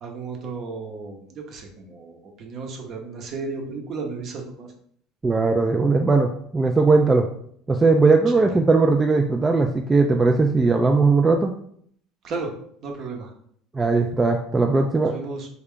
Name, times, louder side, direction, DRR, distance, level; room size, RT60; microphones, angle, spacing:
voice 1, 0.0-4.7 8.4-8.6 12.2-12.5 12.8-13.3 15.0-15.5, right 4 dB, 50° right, 2 dB, 0.8 m, -34 dB
voice 2, 5.2-7.3 7.7-11.5 13.7-15.1, right 3 dB, 20° right, 3 dB, 0.3 m, -19 dB
3.3 x 2.3 x 3.6 m, 0.65 s
supercardioid pair, 85°, 0 cm